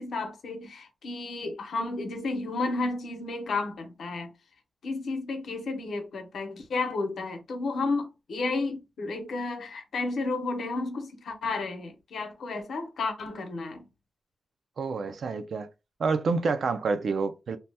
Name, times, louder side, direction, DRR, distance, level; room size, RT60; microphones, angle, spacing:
voice 1, 0.0-4.3 4.8-13.9, left 3 dB, 80° left, 0.8 m, -32 dB
voice 2, 14.8-15.7 16.0-17.6, right 4 dB, 65° right, 0.4 m, -28 dB
2.8 x 2.2 x 3.3 m
wide cardioid pair, 165°, 0 cm